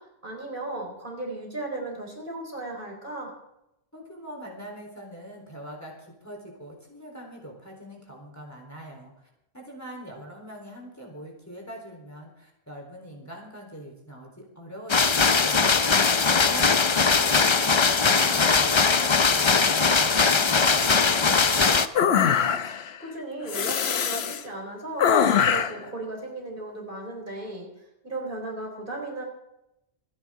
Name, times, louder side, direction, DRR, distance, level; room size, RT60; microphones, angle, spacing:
voice 1, 0.2-3.3 16.5-16.7 22.2-29.2, right 2 dB, 55° right, -1 dB, 4.5 m, -36 dB
voice 2, 3.9-9.1 9.5-21.1, right 1 dB, 15° left, -1 dB, 3.9 m, -43 dB
sound 1, 14.9-21.9, left 5 dB, 35° left, 0.6 m, -20 dB
sound 2, 22.0-22.9 23.5-24.4 25.0-25.8, left 8 dB, 80° left, 1.0 m, -22 dB
26.5 x 9.8 x 3.7 m, 0.85 s
omnidirectional pair, 1.1 m